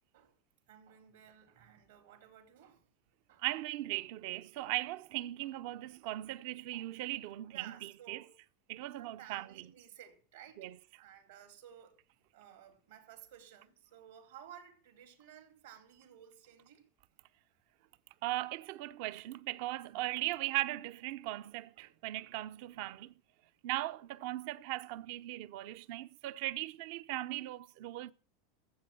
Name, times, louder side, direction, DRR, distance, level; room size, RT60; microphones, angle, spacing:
voice 1, 0.7-2.9 3.3-3.4 5.4-5.5 6.1-6.2 6.7-6.9 7.4-8.4 8.9-10.7 11.0-12.0 12.3-16.9 19.9-20.2 21.3-21.4 21.8-22.3, right 10 dB, 85° right, 4.1 m, -56 dB
voice 2, 3.4-8.2 8.7-9.7 10.6-10.8 18.2-23.1 23.6-28.1, right 17 dB, 65° right, 0.6 m, -38 dB
14.5 x 7.8 x 7.8 m
hypercardioid pair, 105°, 0 cm